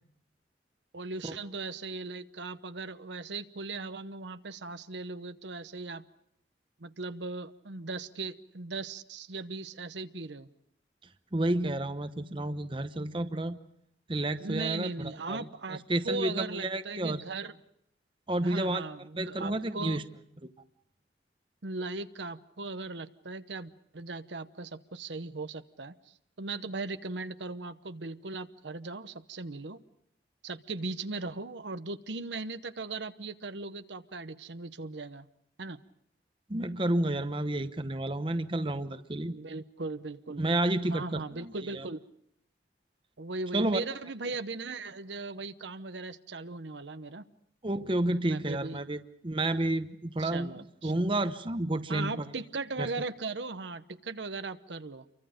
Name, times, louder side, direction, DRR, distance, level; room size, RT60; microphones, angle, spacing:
voice 1, 0.9-6.1 6.8-10.5 14.4-17.6 18.4-20.0 21.6-29.8 30.4-35.3 35.6-35.8 39.2-40.5 40.8-42.0 43.2-47.2 47.7-47.9 48.2-48.8 50.2-50.9 51.9-55.1, right 3 dB, 80° right, 11 dB, 1.0 m, -38 dB
voice 2, 11.3-13.6 14.1-15.5 15.9-17.2 18.3-18.8 19.2-20.0 20.4-20.5 36.5-39.4 40.4-41.9 43.5-43.8 47.6-50.5 50.8-52.3 52.8-52.9, right 1 dB, 30° right, 10 dB, 0.9 m, -30 dB
29.0 x 24.0 x 5.1 m, 0.73 s
head